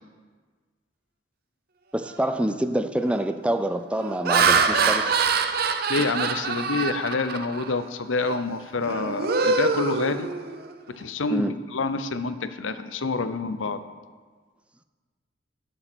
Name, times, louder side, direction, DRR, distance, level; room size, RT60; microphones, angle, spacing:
voice 1, 1.9-5.2 11.3-11.5, right 1 dB, 5° right, 8 dB, 0.4 m, -26 dB
Laughter, 2.1-2.4 3.0-3.3 3.9-7.7 8.2-8.4 8.8-10.7, right 4 dB, 50° right, 0.7 m, -24 dB
voice 2, 5.9-10.3 10.9-13.8, left 3 dB, 80° left, 11 dB, 0.7 m, -27 dB
11.5 x 6.9 x 6.2 m, 1.5 s
head